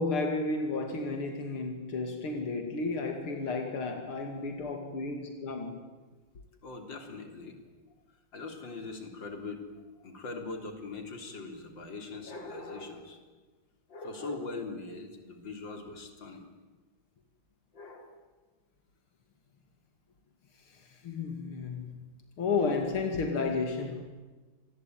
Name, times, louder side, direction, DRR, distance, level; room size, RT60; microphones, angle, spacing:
voice 1, 0.0-5.8 21.0-22.0 22.4-24.0, left 3 dB, 90° left, 5 dB, 3.3 m, -32 dB
voice 2, 6.6-7.6 8.3-9.7 10.0-13.2 13.9-16.4 17.7-18.1 22.6-22.7, left 3 dB, 60° left, 6 dB, 4.2 m, -41 dB
27.5 x 21.0 x 9.2 m, 1.3 s
omnidirectional pair, 2.3 m